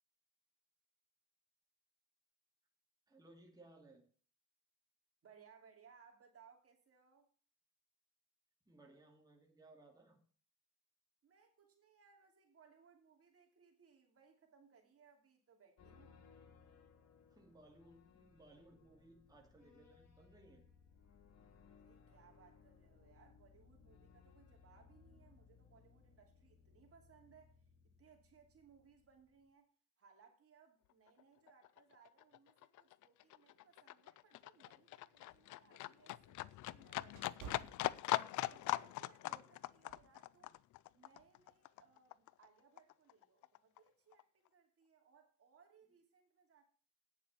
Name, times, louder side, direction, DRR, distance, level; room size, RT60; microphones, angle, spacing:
voice 1, 3.1-4.0 8.7-10.2 17.3-20.6 39.2-39.5, right 2 dB, 10° right, 2.6 m, -63 dB
voice 2, 5.2-7.3 11.2-16.1 21.8-27.6 28.0-29.7 30.0-38.0 38.5-40.6 40.9-46.6, right 6 dB, 50° right, 2.8 m, -67 dB
sound 1, 15.8-29.5, left 5 dB, 60° left, 2.3 m, -65 dB
Livestock farm animals working animals, 31.1-31.2 31.5-42.5 42.8-43.8 44.1-44.2, left 16 dB, 75° left, 0.5 m, -42 dB
sound 2, 34.9-38.6 39.0-39.3 39.9-40.2, right 7 dB, 85° right, 1.5 m, -56 dB
9.3 x 7.2 x 6.9 m
cardioid pair, 90°, 30 cm